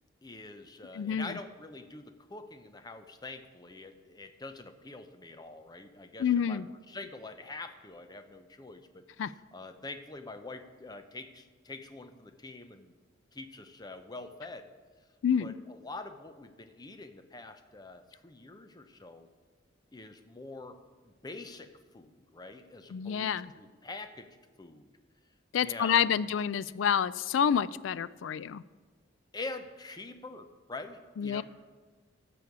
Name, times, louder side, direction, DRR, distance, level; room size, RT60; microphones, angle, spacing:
voice 1, 0.2-12.9 13.3-14.7 15.4-19.3 19.9-24.3 24.6-24.9 25.6-26.3 29.3-31.4, left 3 dB, 20° left, 8 dB, 0.6 m, -45 dB
voice 2, 0.9-1.4 6.2-6.7 9.2-9.3 15.2-15.5 22.9-23.5 25.5-28.6 31.2-31.4, left 8 dB, 85° left, 18 dB, 0.3 m, -28 dB
14.5 x 7.0 x 4.7 m, 1.4 s
head